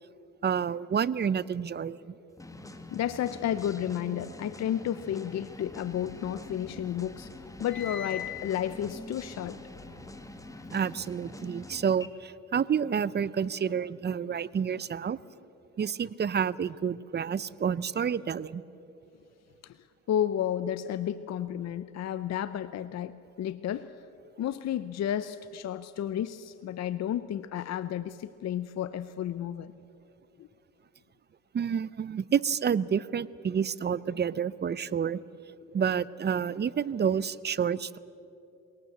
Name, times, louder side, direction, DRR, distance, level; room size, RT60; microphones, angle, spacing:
voice 1, 0.4-2.0 10.7-15.2 15.8-18.6 31.5-35.2 35.7-38.0, right 7 dB, 35° right, 19 dB, 0.6 m, -29 dB
sound 1, 2.4-12.1, left 1 dB, 10° left, 1.7 m, -45 dB
voice 2, 2.9-7.3 7.6-9.6 19.6-24.0 24.4-29.7 30.4-30.5, left 10 dB, 60° left, 14 dB, 0.7 m, -32 dB
sound 2, 5.7-6.7 7.0-10.5, left 9 dB, 40° left, 1.4 m, -43 dB
22.5 x 18.5 x 8.0 m, 2.8 s
cardioid pair, 90°, 30 cm